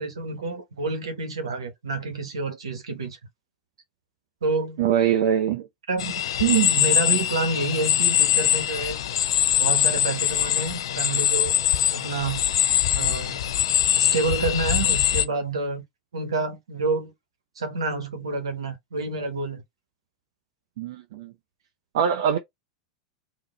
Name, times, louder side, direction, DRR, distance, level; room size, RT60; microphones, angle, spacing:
voice 1, 0.0-3.2 4.4-4.8 5.9-6.1 6.4-9.0 9.6-11.6 11.9-12.4 12.9-13.4 14.0-15.8 16.1-17.1 17.6-19.6, right 4 dB, 75° right, 1.2 m, -28 dB
voice 2, 4.8-5.7 20.8-21.3 21.9-22.4, right 8 dB, 60° right, 0.6 m, -23 dB
sound 1, 6.0-15.3, left 11 dB, 65° left, 0.4 m, -23 dB
3.6 x 2.9 x 3.2 m
figure-of-eight pair, 90°, 3 cm